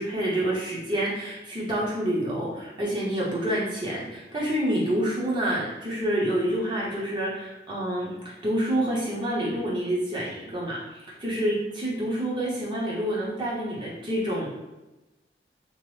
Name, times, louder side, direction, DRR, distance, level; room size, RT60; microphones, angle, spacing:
voice 1, 0.0-8.1 8.4-14.5, right 1 dB, 25° right, -6 dB, 0.7 m, -28 dB
2.9 x 2.0 x 3.1 m, 1.0 s
head